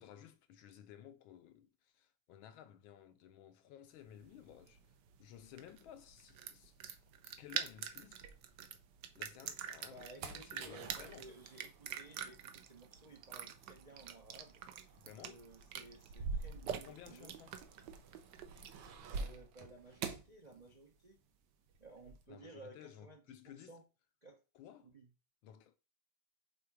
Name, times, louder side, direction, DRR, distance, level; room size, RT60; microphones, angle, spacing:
voice 1, 0.0-8.3 9.2-11.3 14.9-15.4 16.8-17.6 22.3-23.8 24.5-24.9 25.4-25.8, left 10 dB, 75° left, 1.3 m, -56 dB
sound 1, 4.1-18.9, right 9 dB, 70° right, 1.1 m, -47 dB
sound 2, 6.2-9.0 9.4-21.2 21.4-22.3, right 4 dB, 90° right, 1.8 m, -48 dB
voice 2, 9.9-17.4 19.1-21.2 21.8-23.8 24.2-24.4 24.8-25.1, right 2 dB, 50° right, 0.5 m, -57 dB
5.7 x 3.7 x 4.7 m
omnidirectional pair, 2.4 m